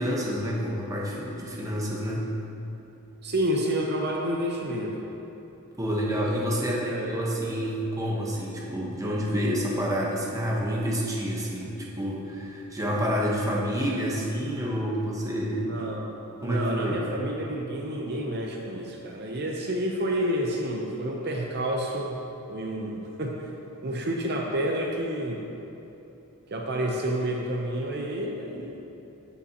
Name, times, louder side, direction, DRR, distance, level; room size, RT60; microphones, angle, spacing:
voice 1, 0.0-2.3 5.8-15.8 16.4-17.2, equal, 15° right, -3 dB, 1.1 m, -28 dB
voice 2, 3.2-5.0 6.6-7.1 15.5-16.1 16.4-22.2 22.5-23.5 23.8-25.4 26.5-28.7, right 1 dB, 50° right, 0 dB, 0.7 m, -29 dB
14.5 x 6.8 x 2.9 m, 3.0 s
head